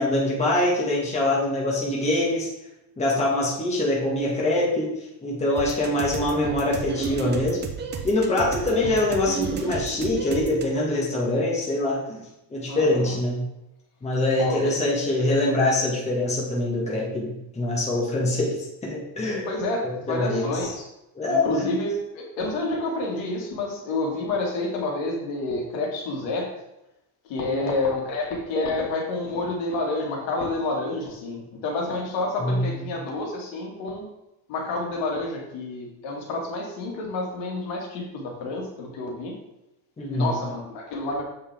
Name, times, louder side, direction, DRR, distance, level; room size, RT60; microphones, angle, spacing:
voice 1, 0.0-2.5 3.0-4.9 5.2-7.6 8.0-12.2 12.5-13.4 14.0-18.6 18.8-19.5 20.1-20.7 21.1-21.7 27.4-27.7 32.4-32.7 40.0-40.3, left 1 dB, 15° left, -4 dB, 1.5 m, -24 dB
sound 1, 5.6-10.6, right 6 dB, 20° right, 0.6 m, -33 dB
voice 2, 12.7-13.2 14.4-14.7 19.5-20.8 21.2-26.5 27.2-34.0 34.5-39.4 40.1-41.2, left 2 dB, 70° left, -1 dB, 2.1 m, -29 dB
7.2 x 5.5 x 3.5 m, 0.89 s
cardioid pair, 155°, 48 cm